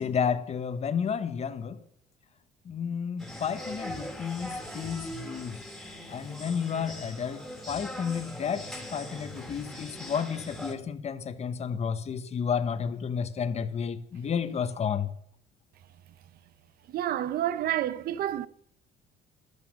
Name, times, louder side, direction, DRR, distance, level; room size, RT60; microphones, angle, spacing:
voice 1, 0.0-1.8 2.6-5.6 6.1-8.7 8.9-15.1, left 7 dB, 40° left, 1.1 m, -31 dB
sound 1, 3.2-10.7, equal, ahead, 2.0 m, -41 dB
voice 2, 16.9-18.5, right 12 dB, 65° right, 0.7 m, -29 dB
12.5 x 9.6 x 6.3 m
cardioid pair, 110°, 17 cm